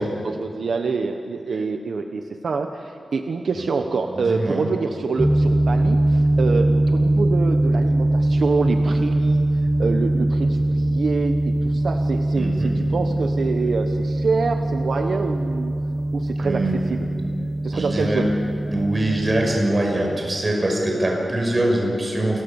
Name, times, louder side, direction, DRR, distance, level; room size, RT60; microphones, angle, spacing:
voice 1, 0.0-9.5 9.8-15.8 16.1-17.0 17.6-18.3, right 4 dB, 65° right, 5 dB, 1.1 m, -26 dB
voice 2, 4.2-4.6 12.3-12.8 16.4-16.8 17.7-18.3 18.6-22.4, right 1 dB, 25° right, 0 dB, 5.8 m, -23 dB
sound 1, 5.2-19.6, right 1 dB, ahead, 0.8 m, -22 dB
29.0 x 22.5 x 7.1 m, 2.5 s
wide cardioid pair, 180°, 0 cm